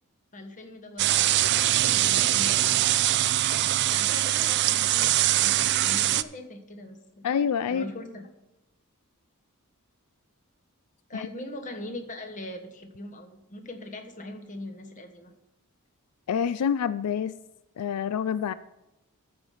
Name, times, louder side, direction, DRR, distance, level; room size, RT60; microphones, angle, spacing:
voice 1, 0.3-2.7 3.9-7.3 7.7-8.3 11.1-15.3, left 1 dB, 35° left, 5 dB, 1.3 m, -41 dB
sound 1, 1.0-6.2, right 14 dB, 50° right, 0.4 m, -23 dB
voice 2, 7.2-7.9 11.1-11.3 16.3-17.3 17.8-18.5, left 7 dB, 90° left, 15 dB, 0.4 m, -27 dB
14.0 x 5.0 x 5.5 m, 0.92 s
head